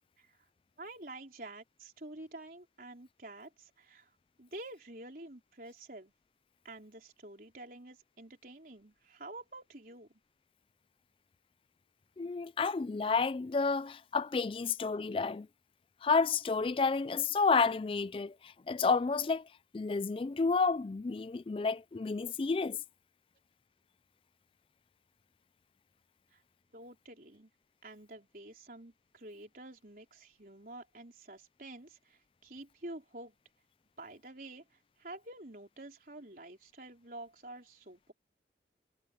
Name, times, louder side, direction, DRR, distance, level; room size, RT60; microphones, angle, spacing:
voice 1, 0.8-4.1 4.4-6.1 6.6-10.2 26.3-26.4 26.7-27.5 27.8-33.4 34.0-38.1, right 2 dB, 50° right, 4.5 m, -49 dB
voice 2, 12.2-15.5 16.0-19.4 19.7-22.8, left 4 dB, 30° left, 0.3 m, -30 dB
head